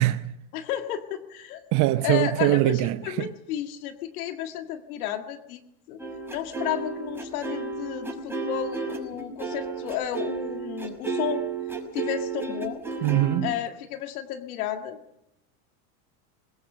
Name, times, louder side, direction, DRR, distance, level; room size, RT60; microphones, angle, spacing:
voice 1, 0.0-0.3 1.7-3.3 13.0-13.5, right 17 dB, 45° right, 0.7 m, -22 dB
voice 2, 0.5-1.6 2.0-5.6 5.9-6.0 6.3-11.4 11.9-12.8 13.4-15.0, left 10 dB, 75° left, 1.8 m, -32 dB
sound 1, 6.0-13.4, right 4 dB, 5° right, 5.9 m, -32 dB
22.0 x 20.0 x 6.7 m
supercardioid pair, 130°, 43 cm